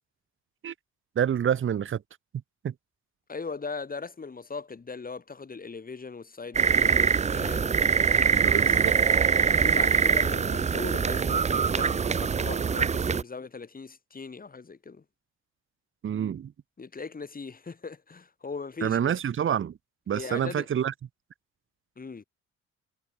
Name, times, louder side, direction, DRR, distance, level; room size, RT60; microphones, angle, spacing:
voice 1, 1.2-2.0 2.6-2.7 8.3-9.0 16.0-16.5 18.8-19.8 20.1-20.9, right 9 dB, 45° right, 0.9 m, -27 dB
voice 2, 3.3-7.8 8.4-8.9 9.5-15.0 16.8-19.2 20.1-20.7 22.0-22.2, left 4 dB, 30° left, 2.9 m, -39 dB
sound 1, 6.6-13.2, right 6 dB, 25° right, 0.5 m, -23 dB
cardioid pair, 90°, 30 cm